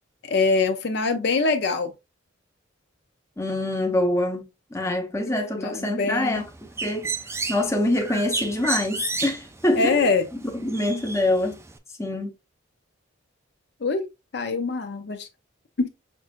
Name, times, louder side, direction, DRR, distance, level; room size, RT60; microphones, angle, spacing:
voice 1, 0.3-1.9 5.3-6.4 9.8-10.3 13.8-14.1 14.3-15.3 15.8-15.9, left 4 dB, 55° left, 0.6 m, -24 dB
voice 2, 3.4-6.5 6.8-7.1 7.5-10.1 10.5-11.6 12.0-12.3, left 1 dB, 15° left, 0.7 m, -25 dB
Bird, 6.3-11.8, right 4 dB, 15° right, 0.3 m, -33 dB
5.9 x 2.5 x 2.4 m
head